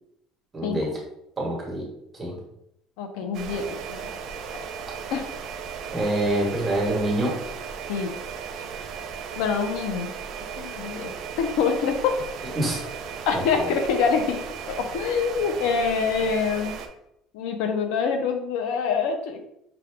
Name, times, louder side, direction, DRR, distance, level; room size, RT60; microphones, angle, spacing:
voice 1, 0.5-0.9 1.4-1.8 2.1-2.4 5.9-7.3 12.5-12.8 13.3-13.8, right 1 dB, 15° right, -3 dB, 1.3 m, -26 dB
voice 2, 3.0-4.1 5.1-5.2 7.9-8.1 9.4-10.1 10.6-11.1 11.4-12.1 13.3-14.4 14.7-16.8 17.3-19.5, left 6 dB, 80° left, 6 dB, 0.6 m, -25 dB
sound 1, 3.3-16.9, right 6 dB, 50° right, 0.5 m, -36 dB
5.1 x 2.3 x 3.5 m, 0.77 s
cardioid pair, 160°, 0 cm